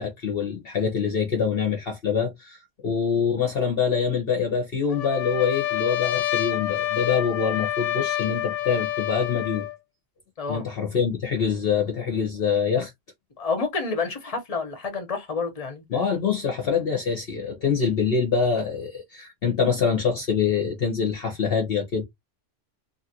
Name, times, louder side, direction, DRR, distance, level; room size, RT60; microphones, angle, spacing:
voice 1, 0.0-9.7 10.5-12.9 15.9-22.0, left 6 dB, 55° left, 1.0 m, -25 dB
Trumpet, 4.9-9.7, left 14 dB, 80° left, 0.9 m, -27 dB
voice 2, 13.4-15.8, left 4 dB, 30° left, 1.0 m, -29 dB
2.9 x 2.5 x 2.8 m
omnidirectional pair, 1.3 m